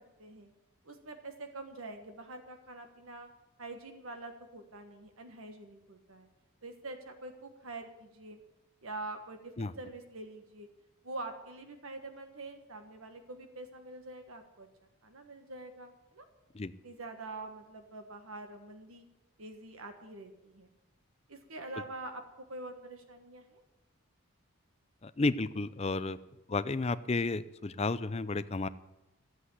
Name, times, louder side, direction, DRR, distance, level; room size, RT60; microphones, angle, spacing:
voice 1, 0.2-0.5 0.8-3.3 3.6-6.3 6.6-8.4 8.8-10.7 11.0-14.7 15.0-16.2 16.8-19.0 19.4-20.7 21.3-22.2 22.5-23.6, right 2 dB, 75° right, 6 dB, 1.5 m, -45 dB
voice 2, 25.0-26.2 26.5-28.7, left 3 dB, 30° left, 14 dB, 0.5 m, -32 dB
14.5 x 7.9 x 9.8 m, 0.97 s
head